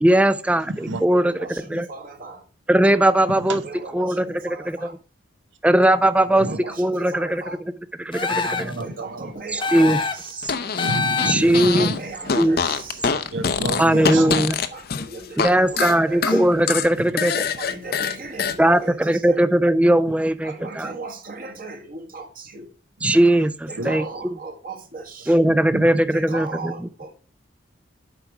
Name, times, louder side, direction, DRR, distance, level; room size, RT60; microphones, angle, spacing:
voice 1, 0.0-1.3 1.7-1.9 2.7-3.6 3.9-5.0 5.6-6.5 6.8-7.4 8.0-8.7 9.5-10.0 11.2-11.9 12.4-12.6 13.8-14.6 15.4-17.4 18.6-20.9 23.0-24.3 25.3-26.7, right 1 dB, 5° right, 0.3 m, -19 dB
voice 2, 1.1-2.4 3.6-5.0 6.3-7.6 8.8-10.6 11.4-13.0 13.9-16.4 17.6-19.4 20.4-22.7 23.7-25.4 26.1-27.1, right 3 dB, 45° right, 1.4 m, -37 dB
sound 1, 8.1-8.8 9.6-10.3 10.8-11.6, left 4 dB, 25° left, 0.9 m, -25 dB
voice 3, 8.3-9.3 10.8-12.0 13.3-14.5 23.0-23.1 23.8-23.9 25.4-25.9, right 1 dB, 85° right, 1.0 m, -29 dB
Fart, 10.4-12.0 12.2-15.5 15.8-18.6, left 6 dB, 55° left, 0.6 m, -24 dB
8.1 x 5.2 x 4.6 m
head